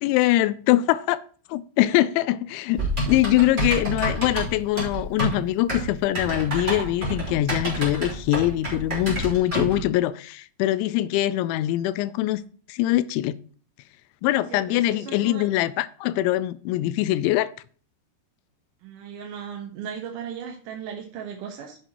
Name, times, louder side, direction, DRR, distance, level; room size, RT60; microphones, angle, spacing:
voice 1, 0.0-1.2 1.5-12.4 12.7-13.3 14.2-17.5, left 15 dB, 85° left, 2.9 m, -23 dB
Typing, 2.8-9.8, right 1 dB, 10° right, 3.2 m, -28 dB
voice 2, 14.3-15.4 18.8-21.8, right 7 dB, 70° right, 2.1 m, -37 dB
11.0 x 8.3 x 3.0 m
omnidirectional pair, 5.3 m